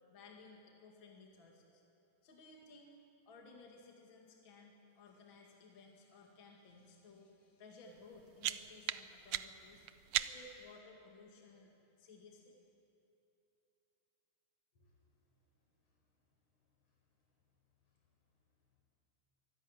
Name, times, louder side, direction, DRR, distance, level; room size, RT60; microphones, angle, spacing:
voice 1, 0.1-1.8 2.2-2.9 3.3-12.6, left 3 dB, 45° left, 0 dB, 2.8 m, -58 dB
sound 1, 8.0-10.7, right 13 dB, 85° right, 1.3 m, -40 dB
voice 2, 14.7-15.0 15.5-16.0 16.5-17.5 17.7-18.8, left 3 dB, 80° left, -1 dB, 6.4 m, -79 dB
25.0 x 13.5 x 9.8 m, 3.0 s
omnidirectional pair, 3.3 m